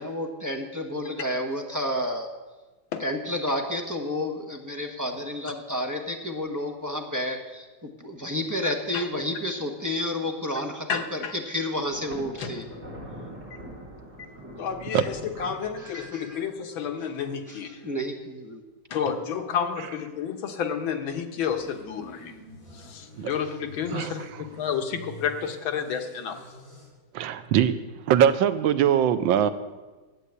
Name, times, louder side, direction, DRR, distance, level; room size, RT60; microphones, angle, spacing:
voice 1, 0.0-2.3 3.0-12.7 15.8-16.4 17.5-18.6, left 1 dB, 10° right, 2 dB, 0.9 m, -31 dB
voice 2, 10.9-11.3 12.4-12.5 13.5-13.6 14.2-14.3 14.6-17.9 18.9-22.4 22.7-26.4, left 7 dB, 85° left, 6 dB, 1.9 m, -31 dB
Thunder, 11.9-16.4, right 1 dB, 50° right, 3.6 m, -43 dB
voice 3, 14.9-15.6 19.8-19.9 23.2-23.3 23.9-24.4 27.1-27.8 28.1-29.5, right 9 dB, 80° right, 11 dB, 1.4 m, -23 dB
sound 1, 21.4-26.9, equal, 45° left, 6.1 m, -46 dB
11.0 x 8.7 x 8.2 m, 1.2 s
omnidirectional pair, 2.2 m